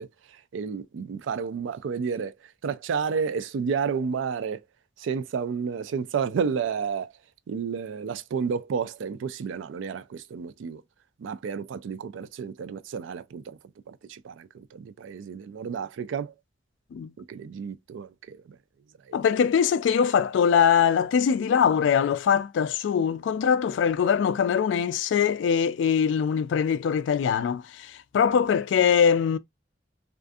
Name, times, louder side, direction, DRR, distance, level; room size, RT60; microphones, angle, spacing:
voice 1, 0.0-2.3 2.6-4.6 5.0-7.1 7.5-10.8 11.2-13.6 13.9-16.3 17.2-18.6 19.1-19.2, right 6 dB, 80° right, 0.3 m, -31 dB
voice 2, 19.1-29.4, left 7 dB, 75° left, 0.3 m, -22 dB
2.5 x 2.4 x 2.3 m
head